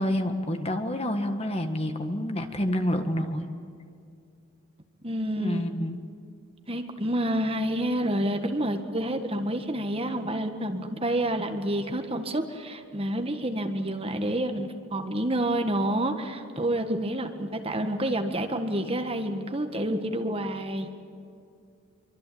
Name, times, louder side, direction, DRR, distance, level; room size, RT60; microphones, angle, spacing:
voice 1, 0.0-3.5 5.4-6.0, left 1 dB, 25° left, 6 dB, 1.7 m, -28 dB
voice 2, 5.0-5.6 6.7-20.9, right 1 dB, 25° right, 6 dB, 1.6 m, -28 dB
25.0 x 24.5 x 8.7 m, 2.4 s
head